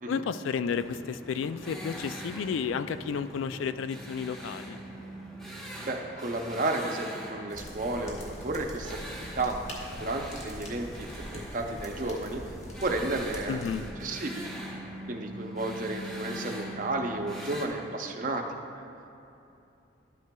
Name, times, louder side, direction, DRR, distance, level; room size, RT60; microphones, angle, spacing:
voice 1, 0.1-4.8 13.5-13.9, left 6 dB, 80° left, 13 dB, 0.3 m, -32 dB
sound 1, 0.7-17.7, equal, 5° left, 0.8 m, -42 dB
voice 2, 5.8-9.6 10.0-12.4 12.8-13.6 14.0-14.5 15.1-18.9, right 2 dB, 40° right, 3 dB, 0.6 m, -32 dB
sound 2, 7.5-13.8, equal, 35° left, 1.5 m, -43 dB
11.5 x 9.3 x 2.3 m, 2.8 s
head